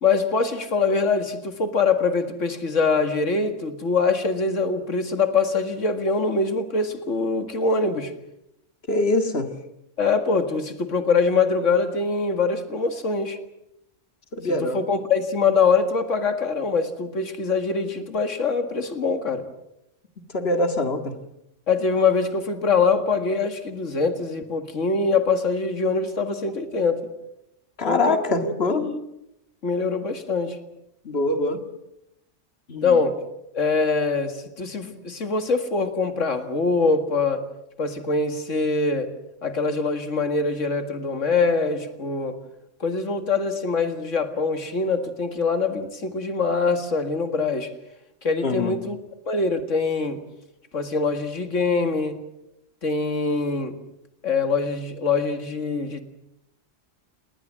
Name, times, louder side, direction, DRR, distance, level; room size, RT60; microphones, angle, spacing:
voice 1, 0.0-8.1 10.0-13.4 14.4-19.5 21.7-27.1 27.8-29.0 29.6-30.6 32.8-33.2 33.5-37.4 37.8-39.1 39.4-42.4 42.8-47.7 48.2-49.0 49.3-50.2 50.7-52.2 52.8-53.8 54.2-56.0, left 4 dB, 80° left, 7 dB, 2.3 m, -23 dB
voice 2, 8.9-9.5 14.3-14.8 20.3-21.1 27.8-28.8 31.1-31.6 32.7-33.0 48.4-48.7, left 2 dB, 55° left, 6 dB, 2.3 m, -23 dB
29.5 x 20.0 x 7.5 m, 0.85 s
omnidirectional pair, 1.3 m